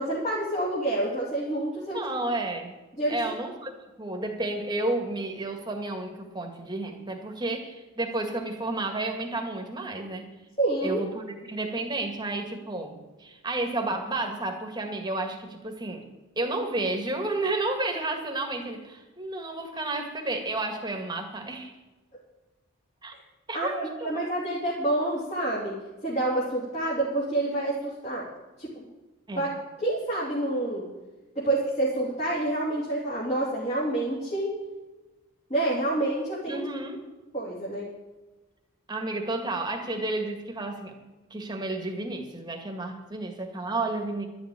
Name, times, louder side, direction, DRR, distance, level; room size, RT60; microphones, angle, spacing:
voice 1, 0.0-2.1 3.0-3.3 10.6-11.0 23.5-25.8 26.0-28.2 28.6-28.8 29.4-29.5 29.8-30.9 31.3-34.5 35.5-36.6 37.3-37.9, right 1 dB, 30° left, -6 dB, 2.9 m, -28 dB
voice 2, 1.9-2.7 3.1-10.3 10.8-16.0 16.4-21.7 23.0-23.1 23.5-24.2 29.3-29.5 36.5-37.0 38.9-40.9 41.3-44.2, right 2 dB, 20° right, 3 dB, 1.9 m, -31 dB
12.0 x 7.1 x 9.9 m, 1.2 s
head